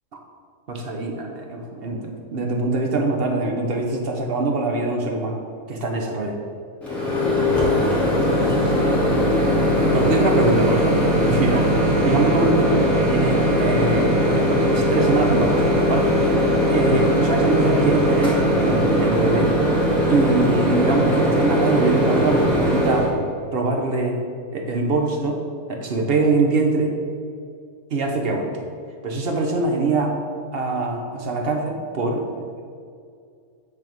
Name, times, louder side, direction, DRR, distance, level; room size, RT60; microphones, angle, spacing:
voice 1, 0.7-5.4 5.7-6.3 8.3-9.2 9.9-11.7 12.0-14.4 14.7-16.2 16.7-19.6 20.1-23.1 23.5-24.2 24.5-25.4 25.7-26.9 27.9-28.6 29.0-30.1 30.5-32.3, right 3 dB, 45° right, 2 dB, 0.9 m, -23 dB
Microwave oven, 6.8-23.1, equal, ahead, 1.7 m, -19 dB
8.8 x 3.6 x 5.3 m, 2.3 s
omnidirectional pair, 1.6 m